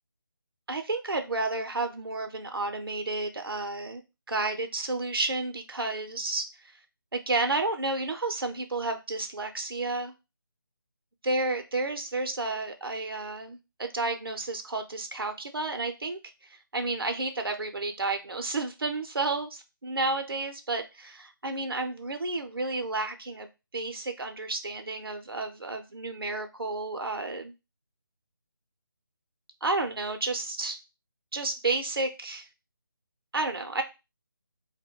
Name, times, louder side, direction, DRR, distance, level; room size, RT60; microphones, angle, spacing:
voice 1, 0.7-4.0 4.3-6.4 7.1-10.1 11.2-23.5 23.7-27.5 29.6-30.8 31.3-32.5 33.3-33.8, right 3 dB, 85° right, 6 dB, 0.5 m, -31 dB
2.2 x 2.1 x 3.6 m, 0.26 s
figure-of-eight pair, 155°, 12 cm